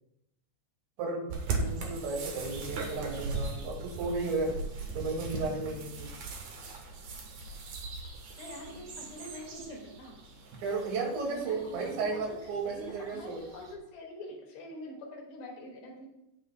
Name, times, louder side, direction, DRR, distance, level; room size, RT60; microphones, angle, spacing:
voice 1, 1.0-4.5 4.9-6.1 10.6-13.4, right 3 dB, 85° right, -1 dB, 4.5 m, -34 dB
sound 1, 1.3-13.7, right 3 dB, 60° right, 2.0 m, -39 dB
voice 2, 8.4-10.2 11.3-16.1, left 1 dB, 60° left, -1 dB, 3.7 m, -45 dB
17.5 x 6.6 x 2.3 m, 0.86 s
omnidirectional pair, 5.0 m